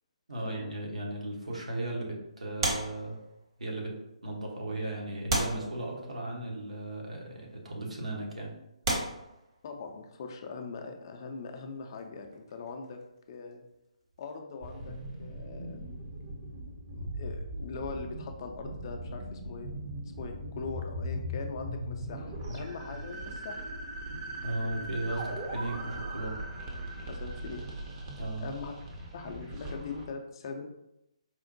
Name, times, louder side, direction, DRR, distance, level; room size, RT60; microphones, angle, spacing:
voice 1, 0.3-3.2 3.6-4.0 4.2-8.5 24.4-26.4 28.2-28.5, right 2 dB, 70° right, -1 dB, 0.9 m, -36 dB
sound 1, 2.6-3.7 4.4-4.5 5.3-6.4 7.3-7.5 8.2-8.3 8.8-10.0 11.9-13.7 14.0-14.2, right 2 dB, 45° right, 1.0 m, -34 dB
voice 2, 9.6-13.0 13.3-13.6 14.2-15.8 16.9-19.9 20.2-23.6 24.6-24.9 27.1-27.6 28.4-28.7 29.1-30.7, left 4 dB, 40° left, 4 dB, 0.4 m, -41 dB
sound 2, 14.6-30.1, right 1 dB, 25° right, 0.5 m, -39 dB
4.3 x 2.1 x 2.6 m, 0.86 s
figure-of-eight pair, 140°, 4 cm